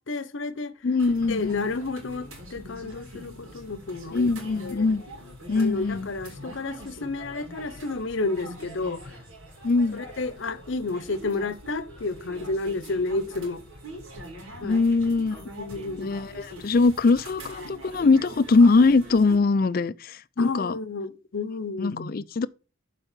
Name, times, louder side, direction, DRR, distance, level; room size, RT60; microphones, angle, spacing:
voice 1, 0.0-0.7 1.3-4.3 4.6-4.9 5.5-9.0 10.0-13.6 14.6-14.8 15.6-16.1 20.4-22.2, left 3 dB, 65° left, 0.8 m, -31 dB
voice 2, 0.8-1.7 4.1-5.0 5.5-6.1 9.6-10.0 14.6-15.5 16.0-20.8 21.8-22.5, left 3 dB, 45° left, 0.4 m, -22 dB
sound 1, 1.0-19.4, right 1 dB, 85° right, 3.6 m, -43 dB
7.2 x 4.8 x 6.6 m
head